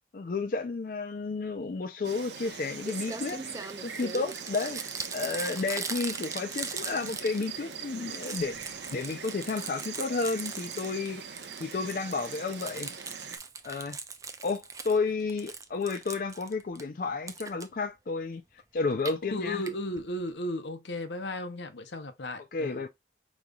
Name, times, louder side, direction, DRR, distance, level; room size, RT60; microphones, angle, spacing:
voice 1, 0.1-4.8 5.1-11.2 11.6-12.9 13.6-14.0 14.4-18.4 18.7-19.6 22.5-22.9, left 4 dB, 50° left, 0.4 m, -32 dB
Insect, 2.0-13.4, right 6 dB, 75° right, 0.8 m, -42 dB
Crumpling crinkling, 2.5-2.6 2.8-7.7 8.0-11.1 11.4-15.0 15.3-16.8 17.3-17.6 18.8-19.1 19.7-19.8 20.0-20.1 20.3-20.4, right 5 dB, 20° right, 0.4 m, -39 dB
voice 2, 19.2-22.8, left 1 dB, 75° left, 0.8 m, -35 dB
5.2 x 3.1 x 2.3 m
head